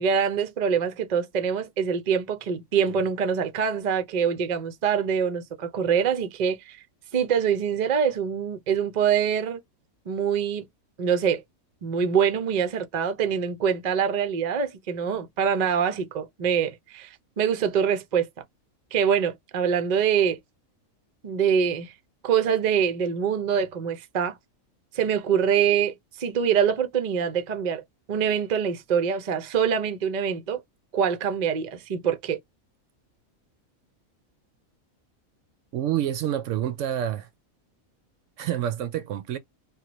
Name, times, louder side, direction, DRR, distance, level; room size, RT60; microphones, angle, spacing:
voice 1, 0.0-6.8 7.1-9.6 10.1-10.7 11.0-11.4 11.8-18.3 18.9-20.4 21.2-21.9 22.2-24.3 24.9-27.8 28.1-30.6 30.9-32.4, right 7 dB, 50° right, 0.5 m, -24 dB
voice 2, 35.7-37.3 38.4-39.4, right 11 dB, 70° right, 0.8 m, -28 dB
3.0 x 2.2 x 2.9 m
omnidirectional pair, 1.4 m